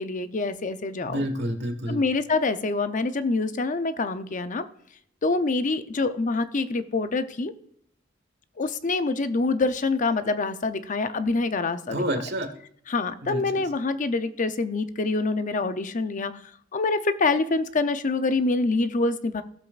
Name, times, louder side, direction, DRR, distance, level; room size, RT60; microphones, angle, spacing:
voice 1, 0.0-1.3 1.9-4.6 5.2-7.5 8.6-12.0 12.9-16.3 16.7-19.4, left 3 dB, 40° left, 11 dB, 0.6 m, -26 dB
voice 2, 1.0-2.0 11.9-12.5 13.2-13.6, equal, 60° right, 7 dB, 1.4 m, -29 dB
16.0 x 7.5 x 2.5 m, 0.66 s
head